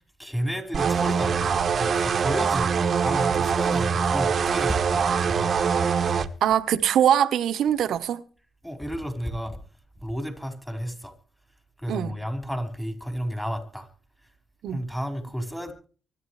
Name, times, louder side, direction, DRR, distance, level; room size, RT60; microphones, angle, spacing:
voice 1, 0.2-5.6 8.6-9.6 10.0-11.1 11.8-13.9 14.7-15.7, equal, 5° left, 4.6 m, -32 dB
sound 1, 0.7-6.3, right 6 dB, 50° right, 1.3 m, -23 dB
voice 2, 6.4-8.2 11.9-12.2 14.6-14.8, right 10 dB, 75° right, 1.1 m, -22 dB
24.5 x 11.0 x 3.3 m
cardioid pair, 90°, 0 cm